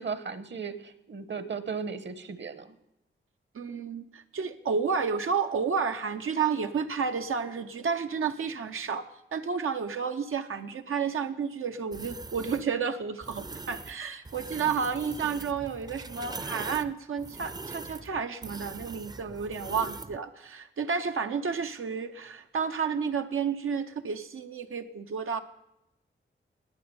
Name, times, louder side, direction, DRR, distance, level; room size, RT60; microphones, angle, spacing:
voice 1, 0.0-2.7, right 5 dB, 60° right, 13 dB, 1.1 m, -36 dB
voice 2, 3.5-25.4, right 6 dB, 90° right, 6 dB, 0.7 m, -31 dB
sound 1, 11.9-12.6 13.2-13.9 14.2-20.2, right 3 dB, 20° right, 0.4 m, -41 dB
19.5 x 8.8 x 6.9 m, 0.87 s
wide cardioid pair, 125°, 21 cm